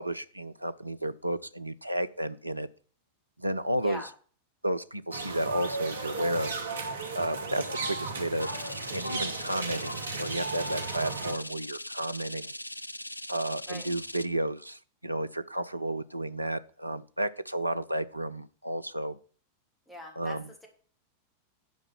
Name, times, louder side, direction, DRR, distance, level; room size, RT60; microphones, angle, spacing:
voice 1, 0.0-2.7 3.4-4.0 4.6-6.5 7.1-8.5 8.9-12.5 13.3-19.2 20.2-20.5, right 1 dB, 85° right, 12 dB, 0.5 m, -32 dB
sound 1, 5.1-11.3, right 3 dB, 70° right, 1.2 m, -35 dB
sound 2, 8.4-14.3, left 1 dB, 85° left, 0.3 m, -40 dB
voice 2, 19.9-20.7, left 1 dB, ahead, 0 dB, 2.9 m, -43 dB
9.4 x 5.1 x 5.8 m, 0.43 s
figure-of-eight pair, 90°, 0 cm